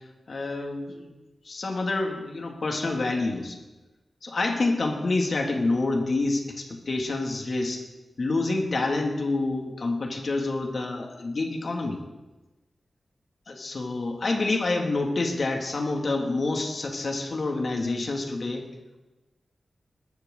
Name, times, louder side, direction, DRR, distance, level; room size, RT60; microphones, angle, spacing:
voice 1, 0.3-1.1 1.5-3.6 4.2-7.8 8.2-12.0 13.5-18.7, left 2 dB, 60° left, 2 dB, 2.2 m, -27 dB
21.0 x 12.0 x 3.8 m, 1.1 s
wide cardioid pair, 105°, 0 cm